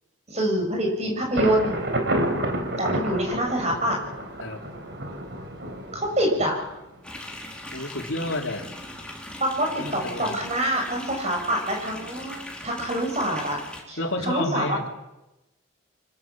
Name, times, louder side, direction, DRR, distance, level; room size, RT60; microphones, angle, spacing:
voice 1, 0.3-1.8 2.8-4.0 5.9-6.7 9.4-13.6 13.9-14.8, right 1 dB, 35° right, 1 dB, 7.6 m, -26 dB
Thunder, 1.4-7.0, right 1 dB, 60° right, 3.9 m, -29 dB
sound 1, 7.0-13.8, left 1 dB, 5° left, 3.5 m, -40 dB
voice 2, 7.7-8.7 9.8-10.4 14.0-14.9, left 1 dB, 75° left, 2 dB, 3.5 m, -30 dB
25.5 x 22.0 x 7.7 m, 0.97 s
head